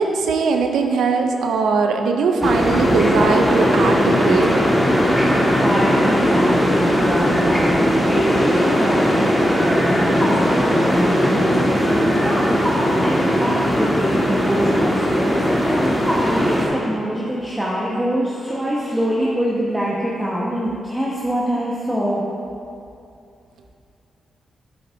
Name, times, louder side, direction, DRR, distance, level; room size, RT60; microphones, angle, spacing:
voice 1, 0.0-4.5, right 4 dB, 75° right, 4 dB, 0.5 m, -20 dB
sound 1, 2.4-16.7, equal, 10° left, 1.6 m, -18 dB
voice 2, 5.6-22.2, equal, 10° right, -6 dB, 1.2 m, -24 dB
8.6 x 7.9 x 2.7 m, 2.5 s
supercardioid pair, 40°, 0 cm